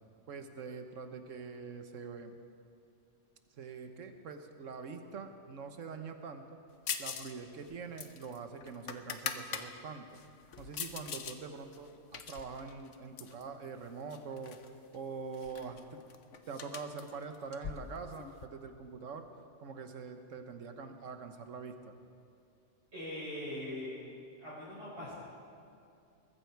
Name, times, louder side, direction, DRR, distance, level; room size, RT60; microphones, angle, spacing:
voice 1, 0.3-2.4 3.5-6.6 7.0-10.1 10.6-16.0 16.5-19.3 19.6-21.9, right 5 dB, 85° right, 7 dB, 1.4 m, -44 dB
sound 1, 6.9-7.3 7.6-9.7 10.1-11.4 11.7-13.4 14.1-14.7 14.9-15.0 15.3-18.5, left 7 dB, 75° left, 1.2 m, -42 dB
voice 2, 22.9-23.9 24.4-25.1, left 1 dB, 65° right, -11 dB, 5.3 m, -41 dB
21.5 x 14.5 x 4.6 m, 2.5 s
omnidirectional pair, 1.3 m